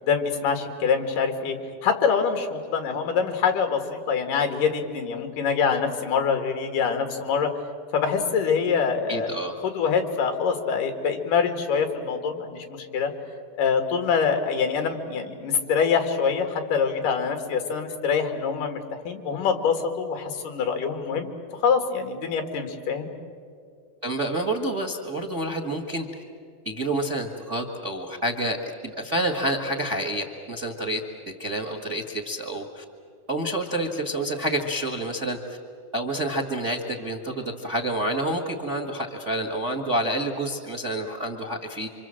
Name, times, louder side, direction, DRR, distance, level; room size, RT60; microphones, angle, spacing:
voice 1, 0.0-1.6 1.8-7.5 7.9-9.3 9.6-13.1 13.6-21.3 21.5-23.1, left 6 dB, 65° left, 6 dB, 3.4 m, -25 dB
voice 2, 9.1-9.6 24.0-26.1 26.6-28.6 28.8-31.0 31.4-32.8 33.3-35.6 35.9-41.9, right 1 dB, 80° right, 4 dB, 0.6 m, -28 dB
27.5 x 25.0 x 7.6 m, 2.3 s
omnidirectional pair, 4.2 m